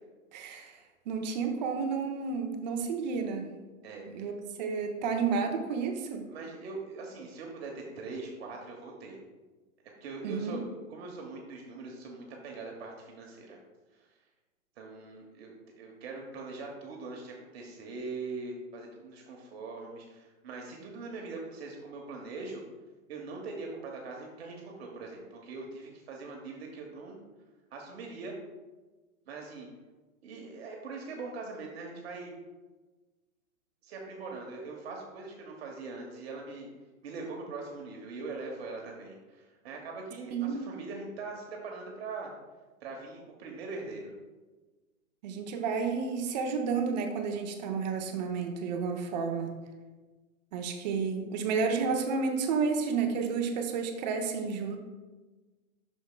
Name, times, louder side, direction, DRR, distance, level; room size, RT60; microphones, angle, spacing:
voice 1, 0.3-0.8 1.1-3.4 4.1-6.3 10.2-10.6 40.3-40.7 45.2-49.6 50.5-54.8, right 5 dB, 30° right, 4 dB, 0.7 m, -31 dB
voice 2, 3.8-4.3 6.3-9.2 10.0-10.6 10.9-13.6 14.0-14.1 14.8-22.6 23.1-27.2 27.7-28.3 29.3-29.7 30.2-32.3 33.8-36.7 37.0-42.3 42.8-44.1, right 3 dB, 45° right, 0 dB, 1.0 m, -42 dB
7.9 x 6.3 x 2.2 m, 1.3 s
hypercardioid pair, 145°, 42 cm